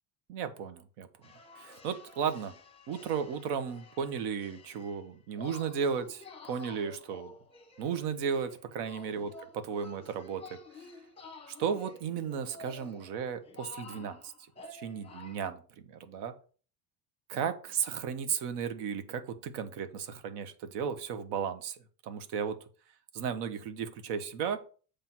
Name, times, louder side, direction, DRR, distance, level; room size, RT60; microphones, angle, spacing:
voice 1, 0.3-1.1 1.6-2.5 2.9-7.3 7.8-10.6 11.5-14.3 14.7-15.6 15.9-16.3 17.3-21.8 22.0-22.6 23.1-24.6, right 7 dB, 70° right, 10 dB, 1.1 m, -34 dB
sound 1, 1.2-5.1 5.3-15.5, left 3 dB, 15° left, 1.0 m, -51 dB
7.5 x 3.4 x 6.0 m, 0.40 s
cardioid pair, 155°, 43 cm